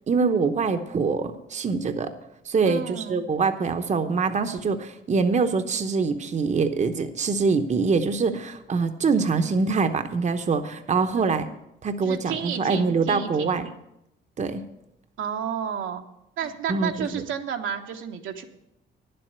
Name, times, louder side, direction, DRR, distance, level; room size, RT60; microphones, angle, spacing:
voice 1, 0.1-2.1 2.5-11.5 11.8-13.7 14.4-14.6 16.7-17.2, right 4 dB, 35° right, 8 dB, 0.9 m, -24 dB
voice 2, 2.6-3.2 11.1-11.4 12.0-13.6 15.2-16.0 16.4-18.4, right 8 dB, 80° right, 4 dB, 1.2 m, -32 dB
10.0 x 7.7 x 7.9 m, 0.84 s
cardioid pair, 90°, 20 cm